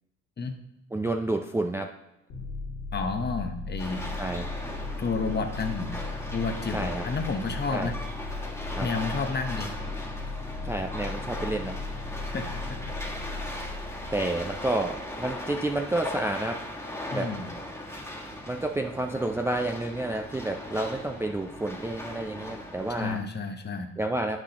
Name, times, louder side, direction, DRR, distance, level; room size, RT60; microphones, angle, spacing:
voice 1, 0.9-1.9 4.2-4.5 6.7-7.0 7.7-7.9 8.8-8.9 10.6-11.8 14.1-16.6 17.1-17.3 18.5-23.2 24.0-24.4, right 2 dB, 10° right, 4 dB, 0.4 m, -30 dB
sound 1, 2.3-15.7, left 3 dB, 75° left, 2.0 m, -37 dB
voice 2, 2.9-4.1 5.0-5.9 6.3-7.9 8.8-9.7 12.2-12.8 17.1-17.5 23.0-23.9, left 4 dB, 35° left, 7 dB, 0.9 m, -31 dB
sound 2, 3.8-23.2, left 1 dB, 10° left, 1.5 m, -38 dB
8.3 x 6.1 x 2.8 m, 0.95 s
cardioid pair, 90°, 30 cm